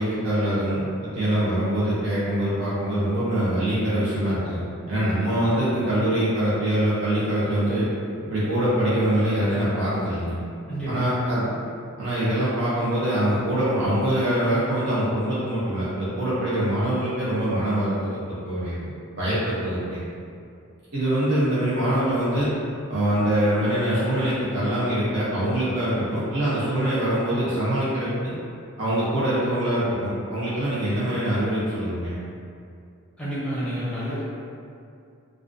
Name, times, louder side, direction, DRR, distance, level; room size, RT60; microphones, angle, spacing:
voice 1, 0.0-4.6 4.9-7.9 8.3-10.3 10.9-11.5 12.0-18.0 18.4-18.8 19.1-20.0 20.9-22.5 22.9-28.3 28.8-32.2, right 1 dB, 55° right, -10 dB, 0.5 m, -24 dB
voice 2, 10.7-11.1 33.2-34.2, equal, 5° left, -11 dB, 0.6 m, -29 dB
2.4 x 2.2 x 2.4 m, 2.5 s
head